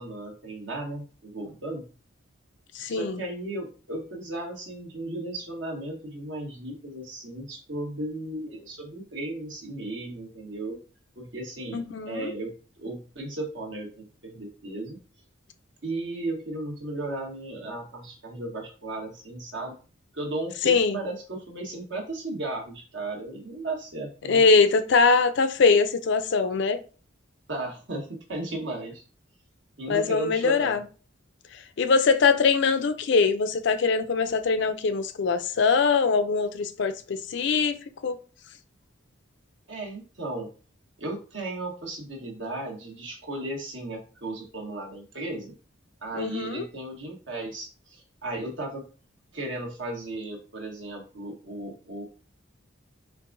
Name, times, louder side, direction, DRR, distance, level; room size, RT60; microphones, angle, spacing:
voice 1, 0.0-1.9 2.9-10.8 11.1-15.0 15.8-19.7 20.1-24.4 27.5-29.0 29.8-30.8 39.7-40.5 41.0-45.5 46.0-48.9 49.3-52.0, right 2 dB, 60° right, 1.2 m, -35 dB
voice 2, 2.7-3.2 11.7-12.3 20.6-21.0 24.3-26.8 29.9-30.8 31.8-38.2 46.1-46.6, left 4 dB, 60° left, 0.4 m, -22 dB
4.5 x 3.5 x 2.6 m
head